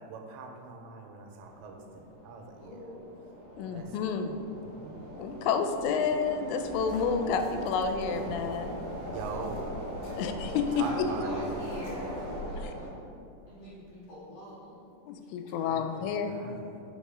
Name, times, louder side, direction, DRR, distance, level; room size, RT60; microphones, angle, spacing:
voice 1, 0.0-2.9 3.7-4.2 4.6-5.1 9.1-9.7 10.8-11.6 15.6-16.8, right 4 dB, 85° right, 3 dB, 2.9 m, -42 dB
sound 1, 1.4-12.9, equal, 60° right, 2.7 m, -40 dB
voice 2, 2.6-3.1 5.6-5.8 7.1-7.2 10.0-10.9 11.2-12.9 13.5-14.9, equal, 50° left, -9 dB, 2.6 m, -45 dB
voice 3, 3.6-4.4 5.2-8.8 10.1-10.9 12.6-12.7 15.1-16.6, left 6 dB, 90° left, 7 dB, 2.8 m, -30 dB
sound 2, 6.6-12.4, left 1 dB, 70° left, 3.0 m, -47 dB
6.2 x 5.3 x 4.9 m, 2.6 s
omnidirectional pair, 5.1 m